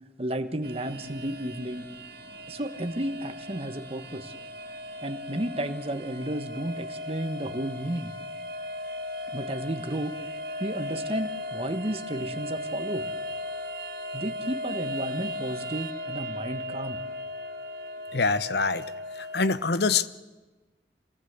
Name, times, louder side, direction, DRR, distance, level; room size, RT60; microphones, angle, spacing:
voice 1, 0.2-1.9 2.5-4.3 5.0-8.1 9.3-10.3 10.6-13.1 14.1-17.0, right 1 dB, 35° right, 8 dB, 1.3 m, -32 dB
sound 1, 0.6-19.5, left 1 dB, 60° right, 2.1 m, -37 dB
voice 2, 18.1-20.1, left 4 dB, 70° left, 15 dB, 0.8 m, -25 dB
26.0 x 18.5 x 8.1 m, 1.2 s
head